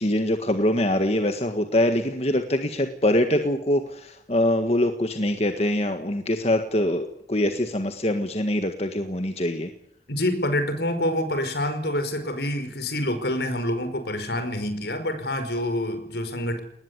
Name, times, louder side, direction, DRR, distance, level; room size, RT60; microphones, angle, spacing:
voice 1, 0.0-9.7, left 1 dB, 35° left, 6 dB, 1.7 m, -24 dB
voice 2, 10.1-16.6, left 1 dB, 70° left, 9 dB, 5.1 m, -27 dB
21.5 x 19.5 x 9.7 m, 0.75 s
head